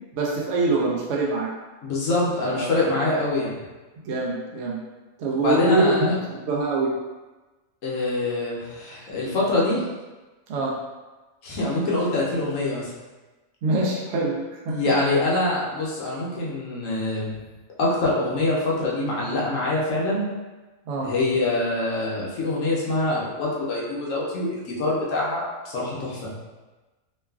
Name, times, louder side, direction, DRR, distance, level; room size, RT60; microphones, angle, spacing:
voice 1, 0.1-1.5 2.4-3.1 4.0-4.8 5.2-6.9 10.5-10.8 13.6-14.8 20.9-21.1, right 2 dB, 65° right, -3 dB, 0.7 m, -25 dB
voice 2, 1.8-3.6 5.4-6.2 7.8-9.8 11.4-12.9 14.7-17.3 17.8-20.3 21.0-25.5 25.7-26.3, left 2 dB, 65° left, -5 dB, 1.0 m, -24 dB
3.1 x 2.3 x 2.3 m, 1.2 s
omnidirectional pair, 1.5 m